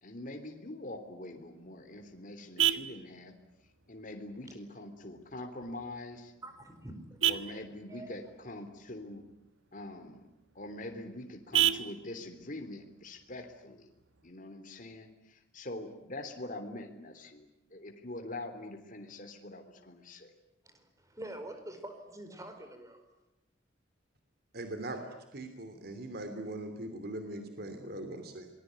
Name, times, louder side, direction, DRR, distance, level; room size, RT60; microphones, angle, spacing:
voice 1, 0.0-3.3 3.9-6.3 7.3-9.2 9.7-10.2 10.6-13.9 14.2-20.3, left 1 dB, 45° left, 5 dB, 3.4 m, -44 dB
Vehicle horn car horn honking, 1.3-14.3, right 11 dB, 90° right, 1.4 m, -37 dB
voice 2, 6.4-7.4 7.9-8.1 8.4-8.5 20.6-23.0, right 1 dB, 15° right, 7 dB, 4.5 m, -46 dB
voice 3, 24.5-25.0 25.3-28.5, right 1 dB, 55° right, 7 dB, 3.0 m, -40 dB
26.5 x 21.0 x 9.6 m, 0.96 s
head